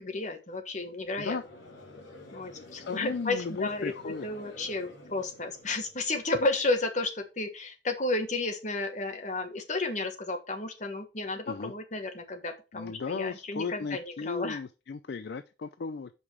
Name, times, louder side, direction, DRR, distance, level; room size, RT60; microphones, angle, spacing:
voice 1, 0.0-1.4 2.3-14.6, left 2 dB, 40° left, 5 dB, 1.3 m, -32 dB
Conversation / Crowd, 1.0-6.3, left 1 dB, 80° left, 2.1 m, -49 dB
voice 2, 2.8-4.3 11.5-11.7 12.7-16.1, left 4 dB, 60° left, 12 dB, 0.4 m, -35 dB
5.4 x 4.9 x 6.1 m, 0.31 s
head